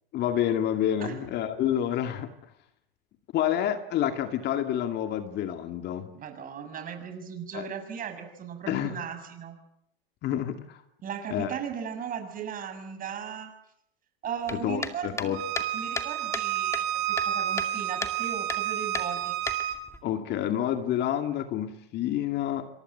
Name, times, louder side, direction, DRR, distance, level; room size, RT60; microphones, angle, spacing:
voice 1, 0.1-2.3 3.3-6.1 7.5-7.7 8.7-9.0 10.2-10.8 11.3-11.5 14.5-15.7 20.0-22.7, left 10 dB, 35° left, 7 dB, 2.3 m, -28 dB
voice 2, 6.1-9.6 11.0-13.5 14.2-15.3 15.7-19.4, right 7 dB, 30° right, 7 dB, 7.1 m, -37 dB
sound 1, 14.5-16.5 16.7-17.7 18.0-18.2 18.5-18.6 18.9-20.0, left 3 dB, 10° left, 2.3 m, -34 dB
Bowed string instrument, 15.3-19.8, right 11 dB, 45° right, 7.9 m, -30 dB
28.0 x 26.0 x 8.0 m, 0.76 s
hypercardioid pair, 115°, 30 cm